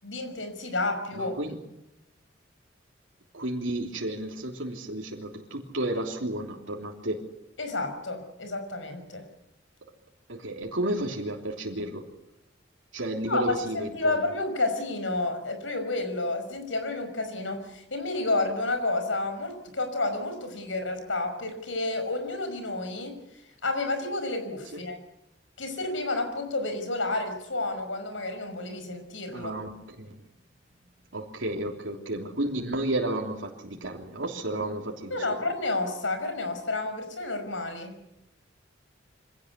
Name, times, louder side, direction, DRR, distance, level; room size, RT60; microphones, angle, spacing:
voice 1, 0.0-1.3 7.6-9.3 13.3-23.2 23.6-25.0 25.6-29.5 35.1-38.0, left 2 dB, 85° left, 8 dB, 5.6 m, -30 dB
voice 2, 1.1-1.6 3.3-7.2 10.3-12.1 12.9-14.2 24.7-24.8 29.3-30.2 31.1-35.4, right 1 dB, 90° right, 0 dB, 3.3 m, -32 dB
25.0 x 17.0 x 8.4 m, 0.89 s
head